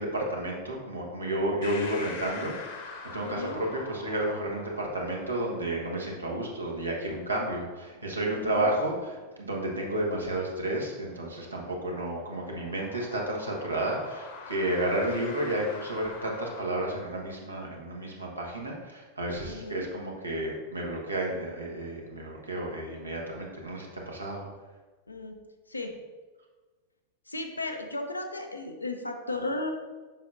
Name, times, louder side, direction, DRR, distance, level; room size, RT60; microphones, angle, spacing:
voice 1, 0.0-24.4, right 1 dB, 80° right, -1 dB, 1.3 m, -31 dB
sound 1, 1.6-16.6, left 4 dB, 50° left, 1.0 m, -46 dB
voice 2, 3.2-3.6 8.3-8.7 19.4-19.9 25.1-25.4 25.7-25.9 27.3-29.7, left 2 dB, 80° left, 4 dB, 0.7 m, -35 dB
7.3 x 5.9 x 2.6 m, 1.3 s
figure-of-eight pair, 90°, 0 cm